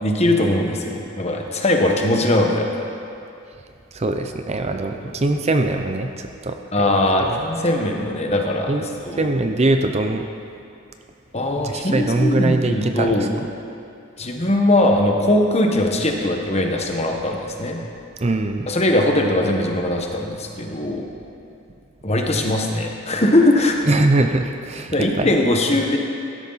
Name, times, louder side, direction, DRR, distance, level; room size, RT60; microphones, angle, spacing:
voice 1, 0.0-2.7 6.7-9.3 11.3-13.3 14.2-17.8 18.7-21.0 22.0-24.0 24.9-26.0, left 1 dB, 30° left, 2 dB, 1.3 m, -20 dB
voice 2, 3.9-7.4 8.7-8.9 9.1-10.3 11.6-13.3 18.2-18.7 23.9-25.3, right 2 dB, 30° right, 6 dB, 0.6 m, -22 dB
16.0 x 13.0 x 4.1 m, 2.5 s
head